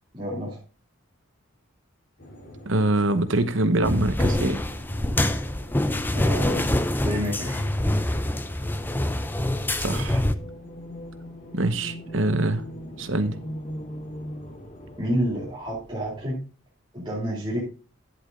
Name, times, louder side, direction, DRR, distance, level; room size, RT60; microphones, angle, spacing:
voice 1, 0.1-0.6 6.1-6.7 7.0-7.6 15.0-16.4 16.9-17.6, equal, 25° right, 2.5 m, -29 dB
sound 1, 2.2-15.0, equal, 55° left, 3.4 m, -48 dB
voice 2, 2.7-4.6 9.8-10.2 11.5-12.7 13.0-13.4, right 2 dB, 70° right, 1.0 m, -24 dB
sound 2, 3.8-10.4, left 1 dB, 10° left, 0.5 m, -25 dB
sound 3, 10.2-16.2, equal, 30° left, 0.8 m, -40 dB
10.5 x 7.9 x 3.8 m
head